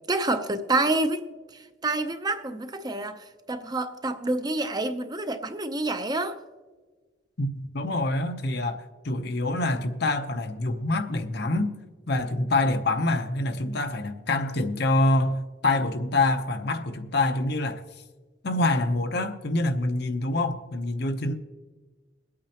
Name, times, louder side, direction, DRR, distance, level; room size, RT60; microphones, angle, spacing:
voice 1, 0.1-1.3 1.8-6.4, right 2 dB, 20° right, 0.7 m, -27 dB
voice 2, 7.4-11.8 12.1-17.8 18.4-21.3, left 2 dB, 55° left, 0.8 m, -26 dB
22.5 x 8.6 x 2.9 m
head